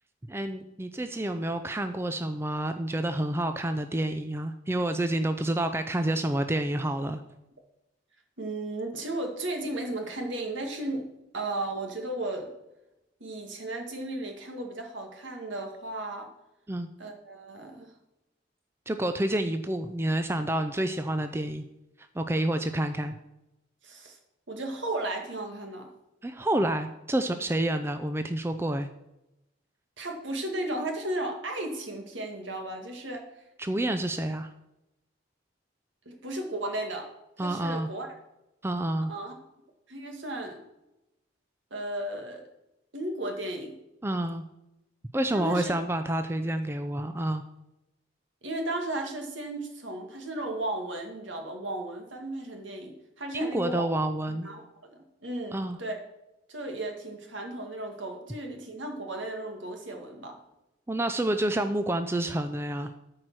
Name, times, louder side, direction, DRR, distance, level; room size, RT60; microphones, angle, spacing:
voice 1, 0.3-7.2 16.7-16.9 18.9-21.7 22.0-23.2 26.2-28.9 33.6-34.5 37.4-37.9 38.6-39.1 44.0-44.4 45.1-47.5 53.3-54.5 55.5-55.8 60.9-62.9, right 1 dB, 10° right, 8 dB, 0.4 m, -29 dB
voice 2, 8.4-11.1 11.3-12.5 13.2-16.3 17.0-17.9 23.8-24.2 24.5-25.9 30.0-33.3 36.1-37.1 37.4-38.1 39.1-39.3 39.9-40.6 41.7-42.4 42.9-43.8 45.3-45.7 48.4-53.9 54.4-56.0 56.5-60.4, right 1 dB, 75° right, 3 dB, 1.9 m, -35 dB
13.0 x 4.8 x 6.1 m, 0.91 s
head